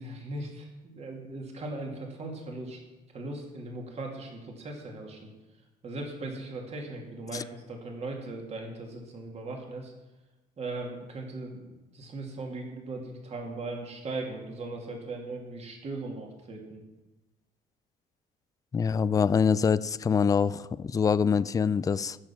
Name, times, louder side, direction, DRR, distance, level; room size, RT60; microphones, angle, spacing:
voice 1, 0.0-2.8 3.1-5.3 5.8-9.9 10.6-16.8, right 2 dB, 40° right, 1 dB, 2.4 m, -38 dB
voice 2, 18.7-22.2, left 6 dB, 20° left, 16 dB, 0.3 m, -25 dB
15.5 x 6.6 x 5.8 m, 1.1 s
cardioid pair, 110°, 17 cm